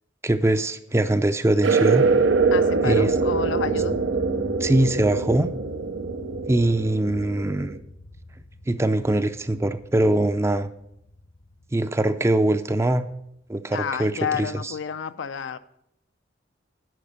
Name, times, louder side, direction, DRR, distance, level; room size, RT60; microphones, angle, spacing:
voice 1, 0.2-2.0 2.8-3.1 4.6-5.5 6.5-7.8 8.7-10.7 11.7-13.0 13.5-14.1 14.4-14.5, right 1 dB, 15° right, 11 dB, 0.4 m, -22 dB
sound 1, 1.6-13.0, left 1 dB, 50° left, 0.7 m, -40 dB
sound 2, 1.6-7.8, right 4 dB, 90° right, 0.6 m, -23 dB
voice 2, 2.5-4.0 13.7-15.6, left 7 dB, 85° left, 12 dB, 0.5 m, -30 dB
10.5 x 4.3 x 6.3 m, 0.78 s
head